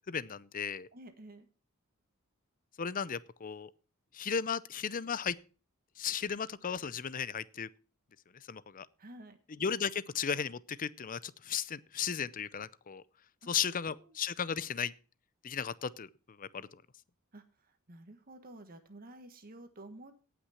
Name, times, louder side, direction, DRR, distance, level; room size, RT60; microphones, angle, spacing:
voice 1, 0.1-0.9 2.8-3.7 4.1-5.4 6.0-7.7 8.5-8.9 9.6-13.0 13.5-14.9 15.4-16.1 16.4-16.8, left 7 dB, 40° left, 0.6 m, -35 dB
voice 2, 0.9-1.5 9.0-9.4 13.4-14.2 17.3-20.1, right 1 dB, 45° right, 1.4 m, -52 dB
17.5 x 6.0 x 5.7 m
head